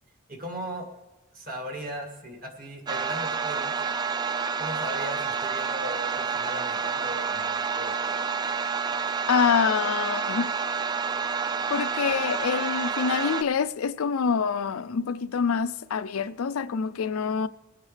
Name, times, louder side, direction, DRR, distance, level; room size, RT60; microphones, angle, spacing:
voice 1, 0.3-0.9 1.3-3.7 4.6-8.1, right 1 dB, 40° right, 1.9 m, -38 dB
sound 1, 2.9-13.4, right 5 dB, 20° right, 0.3 m, -29 dB
voice 2, 9.3-10.5 11.7-17.5, left 6 dB, 80° left, 0.4 m, -26 dB
20.0 x 9.3 x 3.3 m
head